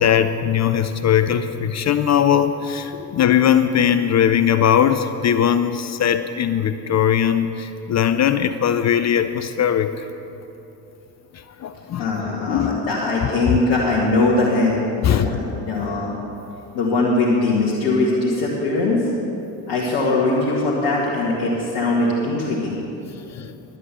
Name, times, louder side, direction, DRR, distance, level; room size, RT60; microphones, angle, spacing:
voice 1, 0.0-9.9 11.6-12.1 12.5-12.8 15.0-15.3 23.4-23.5, left 9 dB, 35° left, 11 dB, 0.6 m, -19 dB
voice 2, 12.0-16.1 16.7-19.1 19.7-22.8, left 2 dB, 60° left, -6 dB, 2.0 m, -21 dB
11.5 x 8.3 x 7.1 m, 3.0 s
hypercardioid pair, 50°, 47 cm